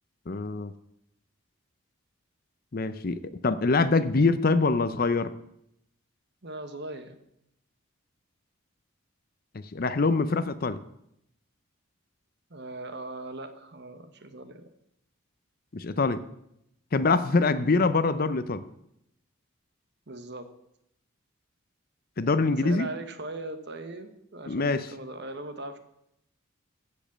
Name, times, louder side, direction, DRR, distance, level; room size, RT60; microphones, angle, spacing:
voice 1, 0.3-0.7 2.7-5.3 9.7-10.8 15.7-16.2 16.9-18.6 22.2-22.9 24.5-24.8, left 3 dB, 45° left, 13 dB, 0.6 m, -24 dB
voice 2, 6.4-7.2 12.5-14.7 17.5-17.8 20.1-20.5 22.5-25.8, right 2 dB, 55° right, 9 dB, 1.2 m, -39 dB
15.5 x 5.2 x 7.3 m, 0.80 s
head